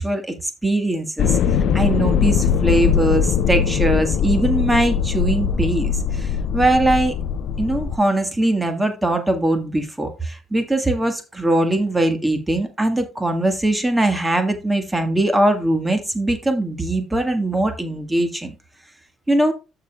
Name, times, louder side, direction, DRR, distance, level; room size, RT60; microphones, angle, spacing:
voice 1, 0.0-7.1 7.6-18.5 19.3-19.5, right 1 dB, 15° right, 1.7 m, -21 dB
sound 1, 1.2-8.0, left 7 dB, 65° left, 0.5 m, -21 dB
14.0 x 5.0 x 2.4 m
hypercardioid pair, 55°, 0 cm